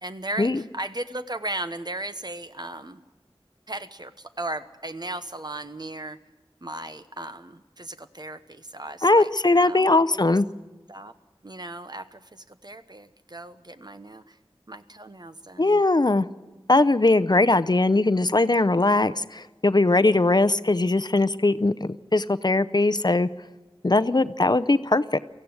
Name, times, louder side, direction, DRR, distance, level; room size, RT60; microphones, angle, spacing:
voice 1, 0.0-3.0 3.7-6.2 6.6-9.3 9.6-10.0 10.9-11.1 11.4-14.4 14.7-15.8, right 1 dB, 45° right, 10 dB, 1.0 m, -36 dB
voice 2, 9.0-10.5 15.6-16.3 16.7-23.3 23.8-25.2, left 2 dB, 45° left, 14 dB, 0.6 m, -20 dB
23.5 x 15.0 x 7.9 m, 1.2 s
wide cardioid pair, 40°, 10 cm